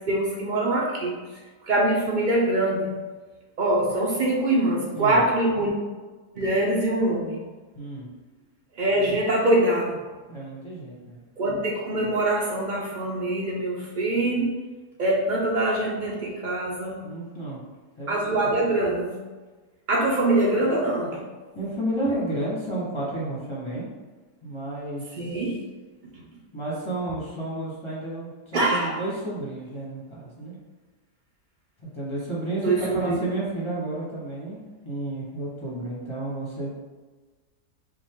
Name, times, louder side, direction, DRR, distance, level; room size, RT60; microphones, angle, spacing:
voice 1, 0.1-1.1 1.6-2.9 3.6-5.7 6.4-7.4 8.8-10.0 11.4-14.5 15.0-17.1 18.1-19.2 19.9-21.2 25.2-25.5 28.5-28.9 32.6-33.2, right 1 dB, 80° right, -3 dB, 0.4 m, -24 dB
voice 2, 7.7-8.1 10.3-11.2 17.0-17.6 18.0-18.5 21.5-23.9 24.4-25.1 26.5-30.5 31.8-36.7, right 1 dB, 20° left, -6 dB, 1.0 m, -31 dB
5.6 x 2.5 x 3.7 m, 1.3 s
omnidirectional pair, 1.8 m